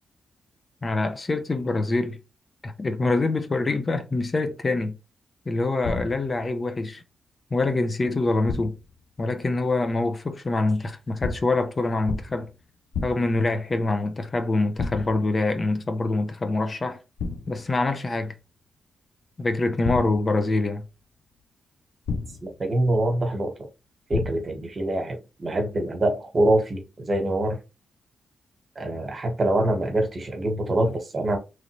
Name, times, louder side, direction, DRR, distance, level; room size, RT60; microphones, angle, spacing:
voice 1, 0.8-2.2 2.6-4.9 5.5-7.0 7.5-8.7 9.2-12.5 13.0-17.0 17.5-18.3 19.4-20.8, left 2 dB, 40° left, 0.6 m, -25 dB
sound 1, 5.8-6.4 8.5-8.9 11.2-11.7 12.1-12.5 12.9-13.5 14.8-15.3 17.2-17.7 19.8-20.5 22.1-22.6 24.1-24.7, left 4 dB, 80° left, 0.5 m, -32 dB
voice 2, 22.4-23.5 24.1-27.6 28.7-31.4, right 1 dB, 45° right, 1.2 m, -24 dB
3.2 x 2.5 x 3.0 m
supercardioid pair, 55°, 0 cm